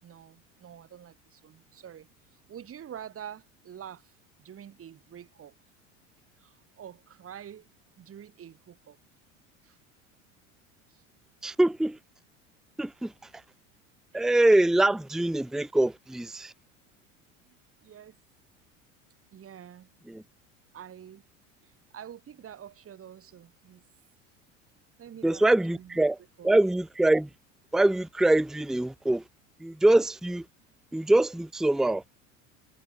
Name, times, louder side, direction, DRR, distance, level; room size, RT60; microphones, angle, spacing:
voice 1, 0.0-5.6 6.4-7.7 8.0-9.0 9.6-9.8 10.9-11.0 14.1-14.2 17.5-18.2 19.3-19.9 20.7-21.2 21.6-23.8 25.0-26.0 26.4-26.5, right 9 dB, 35° right, 5.3 m, -47 dB
voice 2, 11.4-12.0 12.8-13.1 14.1-16.5 20.1-20.2 25.2-26.2 26.4-27.3 27.7-29.2 29.6-30.4 30.9-32.0, right 1 dB, ahead, 0.7 m, -24 dB
hypercardioid pair, 80°, 39 cm